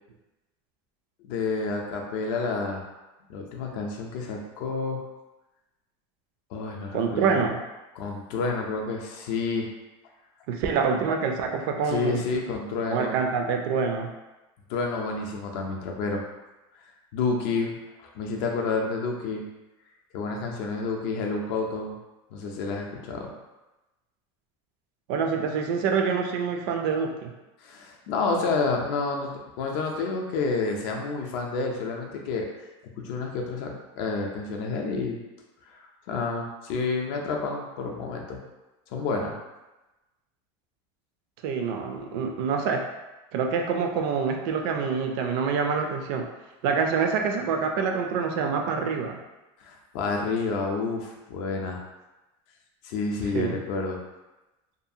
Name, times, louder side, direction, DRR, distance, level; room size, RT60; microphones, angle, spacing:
voice 1, 1.2-2.9 3.3-5.0 6.5-7.4 8.0-9.7 11.9-13.1 14.7-16.2 17.1-17.7 18.0-19.5 20.1-22.0 22.3-23.3 27.6-29.3 29.6-32.5 33.0-35.2 35.7-38.4 38.9-39.4 49.6-51.8 52.8-54.0, left 4 dB, 55° left, 1 dB, 0.5 m, -29 dB
voice 2, 6.9-7.6 10.5-12.2 12.9-14.1 25.1-27.3 41.4-42.8 43.3-46.2 46.6-49.2 53.3-53.6, right 5 dB, 60° right, 3 dB, 0.4 m, -26 dB
2.7 x 2.3 x 2.6 m, 1.0 s
cardioid pair, 175°, 14 cm